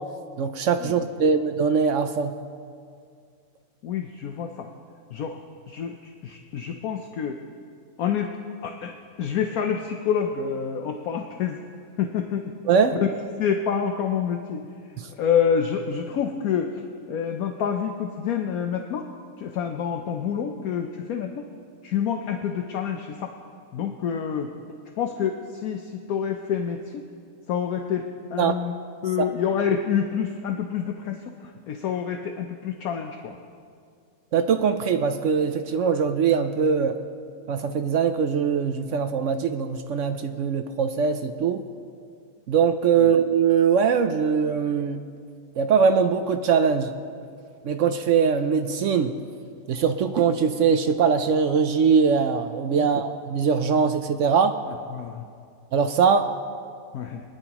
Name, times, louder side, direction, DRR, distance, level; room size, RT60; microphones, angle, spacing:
voice 1, 0.4-2.3 12.7-13.0 28.4-28.5 29.2-29.3 34.3-37.0 37.5-41.6 42.5-45.0 45.6-46.9 47.6-49.1 49.7-54.6 55.7-56.3, right 6 dB, 65° right, 8 dB, 0.8 m, -22 dB
voice 2, 3.8-4.7 5.1-7.4 8.0-8.3 8.6-11.6 12.0-12.5 12.9-13.1 13.4-14.7 15.2-16.7 17.1-19.1 19.4-21.5 21.8-23.3 23.7-24.5 25.0-27.0 27.5-28.7 29.0-33.4 43.0-43.1 52.8-52.9 54.9-55.2 56.9-57.2, left 7 dB, 70° left, 4 dB, 1.1 m, -27 dB
23.0 x 10.5 x 3.0 m, 2.3 s
omnidirectional pair, 1.6 m